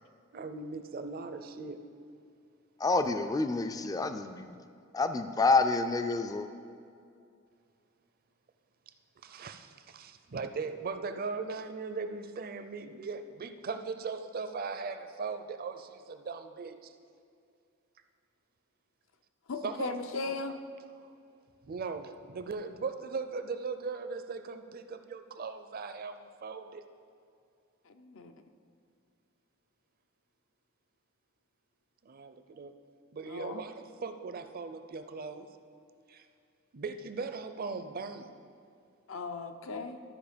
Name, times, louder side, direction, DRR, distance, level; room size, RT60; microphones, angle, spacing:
voice 1, 0.3-1.8 9.2-16.9 19.6-20.0 20.2-20.3 21.6-26.8 32.0-32.7 33.1-35.5 36.1-36.2 36.7-38.3, right 4 dB, 45° right, 9 dB, 0.5 m, -39 dB
voice 2, 2.8-4.6 4.9-6.5, left 3 dB, 20° left, 9 dB, 0.3 m, -28 dB
voice 3, 19.5-20.6 27.9-28.4 33.3-33.6 39.1-40.0, left 3 dB, 75° left, 8 dB, 0.6 m, -37 dB
13.0 x 5.0 x 5.1 m, 2.4 s
head